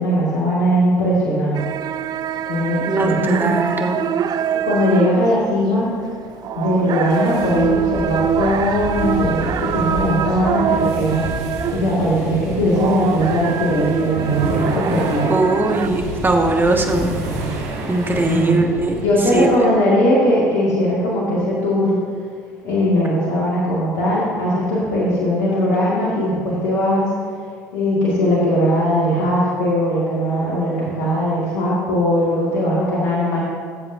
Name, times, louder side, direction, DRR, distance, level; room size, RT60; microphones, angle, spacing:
voice 1, 0.0-1.6 2.5-3.5 4.5-5.9 6.6-11.3 11.7-15.3 18.2-18.6 19.0-22.0 22.6-27.1 27.7-33.4, equal, 75° left, -6 dB, 2.1 m, -19 dB
sound 1, 1.5-12.2 12.5-15.9, right 8 dB, 50° right, 0.5 m, -24 dB
voice 2, 2.9-4.0 15.3-17.1 17.9-19.0 19.3-19.5, right 2 dB, 25° right, 3 dB, 1.4 m, -19 dB
sound 2, 7.1-19.5, right 2 dB, 75° right, 1.7 m, -29 dB
17.5 x 7.7 x 2.7 m, 2.1 s
hypercardioid pair, 65°, 9 cm